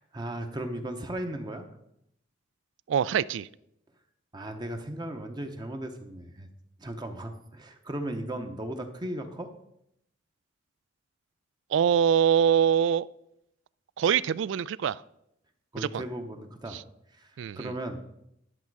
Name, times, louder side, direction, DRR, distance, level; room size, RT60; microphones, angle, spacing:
voice 1, 0.0-1.7 4.3-6.5 6.8-9.5 15.7-16.8 17.1-18.0, right 1 dB, 20° right, 5 dB, 0.7 m, -36 dB
voice 2, 2.9-3.5 11.7-13.1 14.0-15.0 15.8-16.0 16.7-16.8 17.4-17.7, right 8 dB, 65° right, 20 dB, 0.3 m, -24 dB
11.0 x 7.0 x 4.7 m, 0.79 s
head